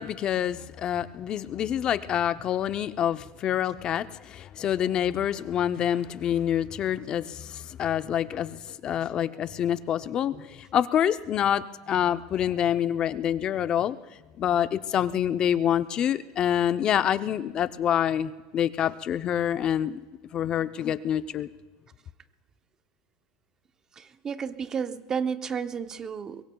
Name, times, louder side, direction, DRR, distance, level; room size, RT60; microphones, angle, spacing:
voice 1, 0.0-14.0 14.4-20.0 20.3-21.5, left 10 dB, 35° left, 12 dB, 0.6 m, -27 dB
voice 2, 24.0-26.4, right 6 dB, 25° right, 11 dB, 0.7 m, -32 dB
23.0 x 22.0 x 2.3 m, 1.2 s
supercardioid pair, 135°, 2 cm